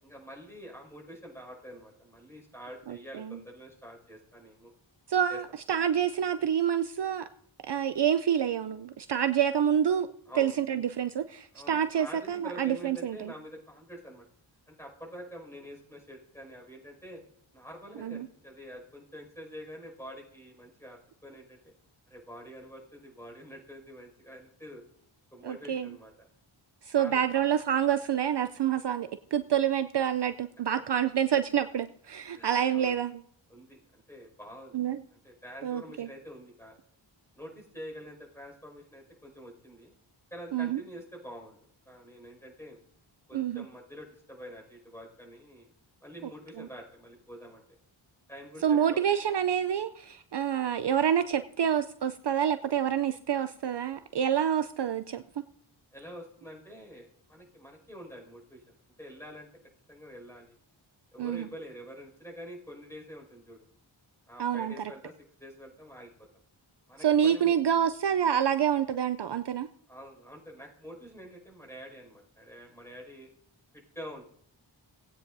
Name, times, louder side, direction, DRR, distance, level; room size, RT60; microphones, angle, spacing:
voice 1, 0.0-4.7 5.3-5.4 10.3-10.6 11.5-14.2 14.7-17.2 17.5-21.6 22.1-24.8 25.3-26.3 27.0-27.3 32.3-33.0 33.5-34.7 35.1-36.8 37.3-39.9 40.3-41.6 41.9-42.8 43.3-45.7 46.0-47.6 48.3-49.0 55.9-58.6 59.0-59.5 59.9-60.5 61.1-63.6 64.3-65.1 65.4-66.3 66.9-67.6 69.9-73.3 73.9-74.2, equal, 5° left, -1 dB, 5.4 m, -46 dB
voice 2, 2.9-3.4 5.1-7.2 7.6-10.1 10.4-13.3 18.0-18.3 25.4-25.9 26.9-33.2 34.7-35.0 35.6-36.1 40.5-40.8 43.3-43.6 46.6-46.7 48.6-55.2 61.2-61.5 64.4-64.7 67.0-69.7, right 9 dB, 60° right, 11 dB, 0.5 m, -27 dB
18.5 x 8.8 x 2.6 m, 0.64 s
wide cardioid pair, 65°, 48 cm